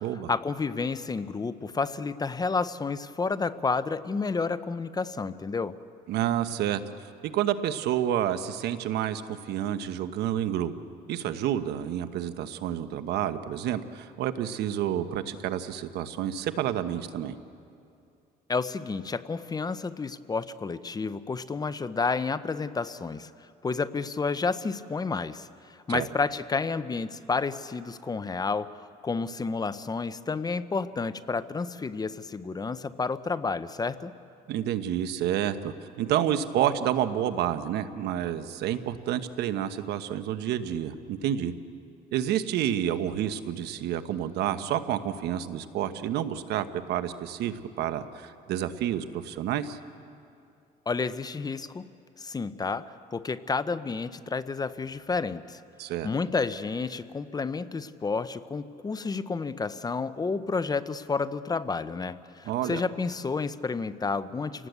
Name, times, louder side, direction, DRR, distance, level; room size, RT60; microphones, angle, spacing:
voice 1, 0.3-5.8 18.5-23.3 23.6-34.1 50.9-51.9 52.2-55.6 56.0-64.7, left 4 dB, 25° left, 13 dB, 0.8 m, -30 dB
voice 2, 6.1-6.8 7.2-10.7 11.1-17.3 25.9-26.1 34.5-41.5 42.1-49.8 55.8-56.1 62.5-62.8, right 10 dB, 75° right, 11 dB, 1.2 m, -29 dB
29.5 x 18.5 x 8.2 m, 2.6 s
cardioid pair, 110°, 17 cm